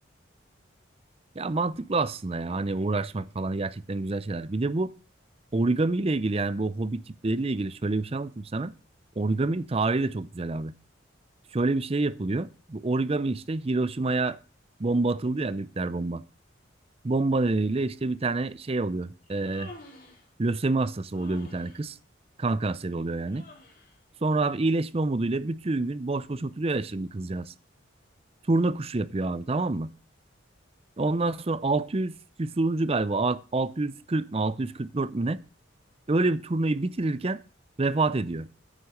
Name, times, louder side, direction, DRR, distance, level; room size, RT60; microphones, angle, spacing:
voice 1, 1.4-4.9 5.5-8.7 9.2-10.7 11.5-14.4 14.8-16.2 17.0-19.7 20.4-22.0 22.4-23.5 24.2-27.5 28.5-29.9 31.0-35.4 36.1-37.4 37.8-38.5, right 2 dB, 30° right, 0.5 m, -27 dB
Human voice, 19.2-20.3 21.1-21.8 23.3-24.0, left 2 dB, 45° left, 2.8 m, -49 dB
9.2 x 6.7 x 6.5 m
head